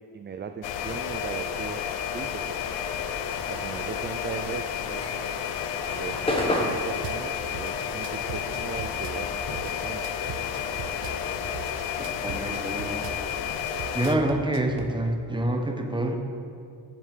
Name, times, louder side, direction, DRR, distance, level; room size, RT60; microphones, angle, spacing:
voice 1, 0.0-1.9 2.1-2.4 3.5-5.3 6.0-10.0, right 6 dB, 25° right, 7 dB, 0.4 m, -38 dB
sound 1, 0.6-14.2, left 8 dB, 80° left, 0.8 m, -31 dB
sound 2, 4.8-9.6 9.8-11.8, left 1 dB, 10° left, 1.3 m, -32 dB
Drum kit / Bass drum, 7.0-7.2 7.5-9.2 9.5-11.2 11.5-13.2 13.7-14.9, right 9 dB, 75° right, 0.8 m, -39 dB
voice 2, 12.0-13.0 13.9-16.2, right 1 dB, 10° right, 4 dB, 1.0 m, -27 dB
7.1 x 7.0 x 6.5 m, 2.5 s
cardioid pair, 95°, 43 cm